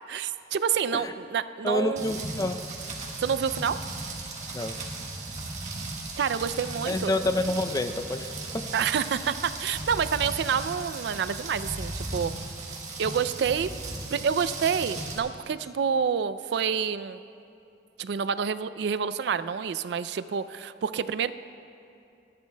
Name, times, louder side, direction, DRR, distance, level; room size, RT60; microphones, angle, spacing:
voice 1, 0.1-2.1 3.2-3.8 6.2-7.1 8.7-12.3 13.0-13.7 14.1-17.2 18.0-21.3, right 7 dB, 70° right, 14 dB, 0.3 m, -28 dB
voice 2, 1.6-2.6 4.5-4.8 6.9-8.7, left 1 dB, 20° left, 8 dB, 0.4 m, -28 dB
Rain, 2.0-15.2, right 2 dB, 40° right, 1.5 m, -36 dB
29.5 x 10.5 x 2.2 m, 2.7 s
head